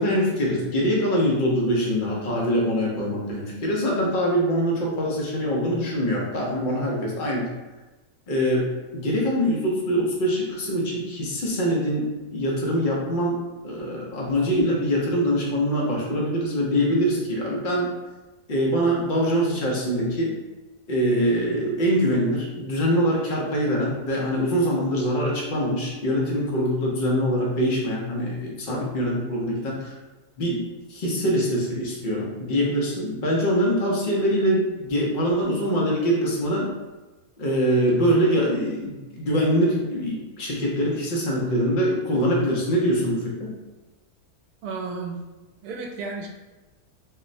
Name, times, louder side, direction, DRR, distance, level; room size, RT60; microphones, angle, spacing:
voice 1, 0.0-7.5 8.3-13.4 13.6-17.9 18.5-20.3 20.9-29.9 30.4-30.6 30.9-36.7 37.4-43.5, equal, 55° left, -3 dB, 0.5 m, -23 dB
voice 2, 44.6-45.2 45.6-46.3, right 4 dB, 80° right, 1 dB, 1.1 m, -32 dB
4.1 x 2.0 x 2.6 m, 1.1 s
omnidirectional pair, 1.7 m